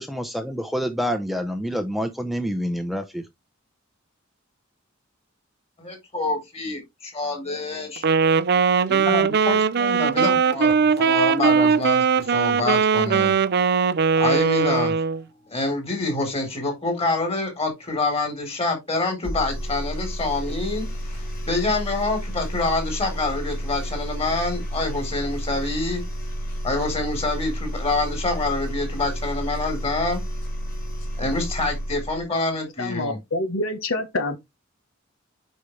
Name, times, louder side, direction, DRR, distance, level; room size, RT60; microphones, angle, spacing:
voice 1, 0.0-3.2, equal, ahead, 0.7 m, -27 dB
voice 2, 5.8-8.0 8.9-13.4 14.2-15.0 15.5-26.0 26.6-30.2 31.2-33.2, left 2 dB, 30° left, 3.8 m, -26 dB
Wind instrument woodwind instrument, 8.0-15.2, right 6 dB, 55° right, 0.5 m, -20 dB
sound 1, 19.2-32.2, equal, 50° left, 4.3 m, -31 dB
voice 3, 32.8-34.4, left 2 dB, 75° left, 1.3 m, -26 dB
8.2 x 5.5 x 3.3 m
head